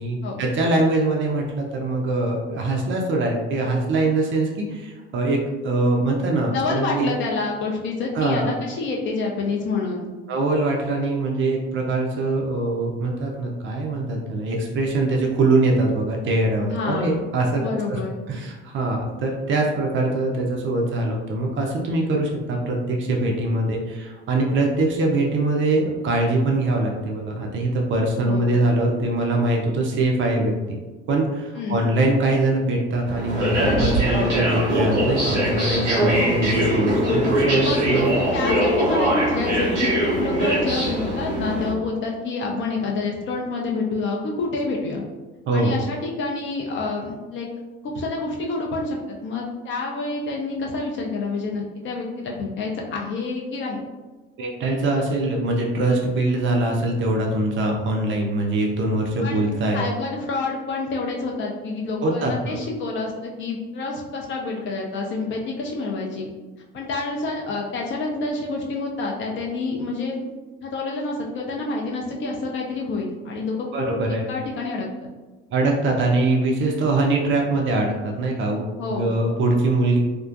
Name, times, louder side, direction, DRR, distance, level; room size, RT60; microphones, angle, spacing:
voice 1, 0.0-5.4 5.6-7.1 8.1-8.5 10.3-17.6 17.9-18.0 18.3-30.8 31.1-38.1 45.5-45.8 54.4-59.8 62.0-62.5 73.7-74.3 75.5-80.0, right 2 dB, 35° right, 0 dB, 0.5 m, -23 dB
voice 2, 6.5-10.1 16.7-17.2 17.5-18.1 28.2-28.5 31.6-31.9 37.6-37.8 38.3-45.0 45.5-47.5 47.8-53.8 59.2-59.5 59.7-66.3 66.7-70.3 70.6-75.1 78.8-79.1, left 3 dB, 35° left, -1 dB, 0.4 m, -28 dB
sound 1, 33.1-41.7, equal, 75° right, 0.8 m, -22 dB
2.4 x 2.2 x 2.4 m, 1.2 s
figure-of-eight pair, 55°, 34 cm